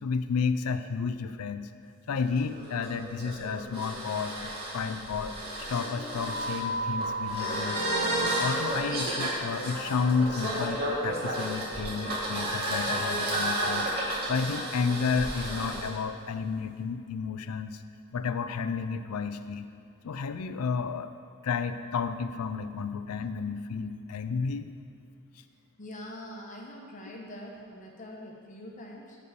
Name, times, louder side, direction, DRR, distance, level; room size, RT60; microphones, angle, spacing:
voice 1, 0.0-1.7 2.1-7.8 8.2-13.9 14.3-17.8 18.1-19.7 20.0-21.1 21.4-24.7, left 5 dB, 90° left, 11 dB, 0.4 m, -31 dB
sound 1, 2.1-15.9, right 1 dB, 45° right, 1.9 m, -32 dB
voice 2, 25.8-29.2, left 1 dB, 35° left, -1 dB, 0.9 m, -43 dB
6.7 x 5.4 x 6.9 m, 2.6 s
head